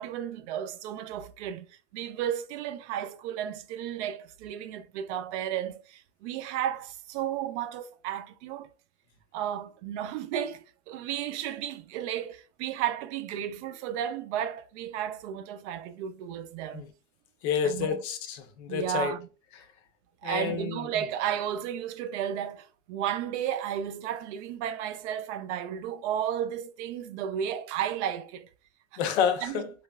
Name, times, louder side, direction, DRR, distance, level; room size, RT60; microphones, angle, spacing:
voice 1, 0.0-8.7 9.3-16.8 17.6-18.0 18.7-19.3 20.2-28.5 28.9-29.0 29.4-29.6, right 10 dB, 70° right, 0.5 m, -33 dB
voice 2, 17.4-19.1 20.2-20.8 29.0-29.6, left 7 dB, 60° left, 0.6 m, -29 dB
3.0 x 2.4 x 2.3 m
supercardioid pair, 170°, 36 cm